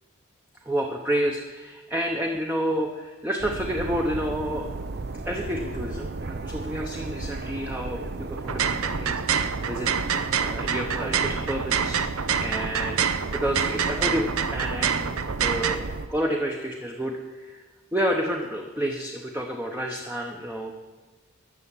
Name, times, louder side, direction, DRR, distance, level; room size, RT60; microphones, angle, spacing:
voice 1, 0.6-4.7 5.2-9.9 10.4-12.0 12.4-13.0 13.3-17.6 17.9-20.7, equal, 10° right, 1 dB, 0.8 m, -30 dB
sound 1, 3.4-16.1, right 3 dB, 50° right, 0.6 m, -34 dB
sound 2, 8.4-15.8, right 7 dB, 85° right, 0.7 m, -27 dB
13.0 x 7.1 x 8.3 m, 1.3 s
head